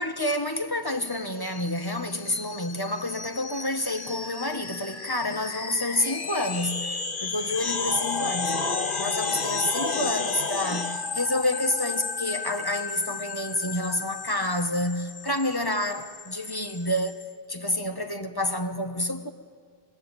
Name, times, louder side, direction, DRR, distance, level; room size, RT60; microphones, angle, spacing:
voice 1, 0.0-8.6 9.0-17.2 17.5-19.3, left 1 dB, 20° left, 1.2 m, -29 dB
sound 1, 1.0-17.2, left 4 dB, 55° left, 1.4 m, -33 dB
25.5 x 21.0 x 9.0 m
omnidirectional pair, 1.0 m